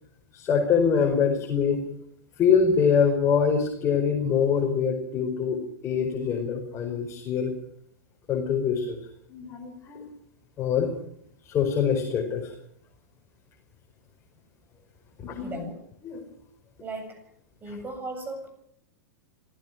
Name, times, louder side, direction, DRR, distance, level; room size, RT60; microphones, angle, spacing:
voice 1, 0.3-1.8 2.4-7.5 8.3-9.0 9.3-10.0 10.6-10.9 11.4-12.5 15.2-15.6 16.0-16.2 17.7-17.8, left 6 dB, 30° left, 1 dB, 5.1 m, -24 dB
voice 2, 15.4-15.8 16.8-17.2 17.6-18.5, right 2 dB, 20° right, 7 dB, 7.8 m, -36 dB
26.5 x 16.0 x 6.2 m, 0.70 s
figure-of-eight pair, 100°, 10 cm